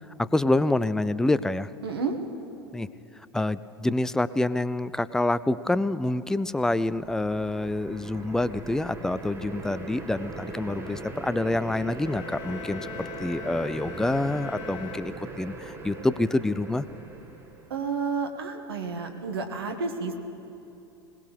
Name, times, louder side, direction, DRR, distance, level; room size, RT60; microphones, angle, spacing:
voice 1, 0.2-1.7 2.7-2.9 3.3-16.9, left 2 dB, 5° left, 16 dB, 0.3 m, -27 dB
voice 2, 1.8-2.2 17.7-20.1, right 5 dB, 70° right, 4 dB, 1.6 m, -30 dB
sound 1, 6.5-17.9, right 2 dB, 15° right, 1.7 m, -40 dB
sound 2, 11.9-15.7, left 9 dB, 35° left, 0.8 m, -43 dB
20.5 x 19.5 x 3.4 m, 2.8 s
figure-of-eight pair, 85°, 13 cm